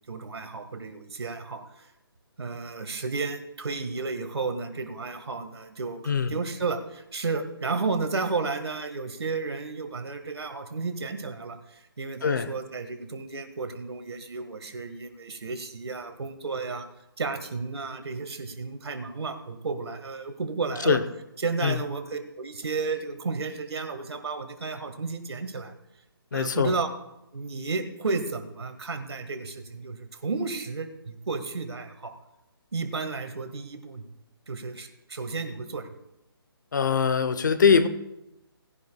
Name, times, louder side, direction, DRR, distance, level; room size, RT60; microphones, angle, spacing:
voice 1, 0.1-1.6 2.4-16.9 17.2-21.0 21.4-25.7 26.3-26.9 27.3-32.1 32.7-34.0 34.5-35.9, right 4 dB, 90° right, 8 dB, 1.7 m, -32 dB
voice 2, 6.1-6.4 12.2-12.5 20.9-21.0 21.6-21.8 26.3-26.7 36.7-37.9, left 6 dB, 50° left, 13 dB, 0.8 m, -22 dB
19.0 x 10.5 x 2.3 m, 0.89 s
hypercardioid pair, 175°, 13 cm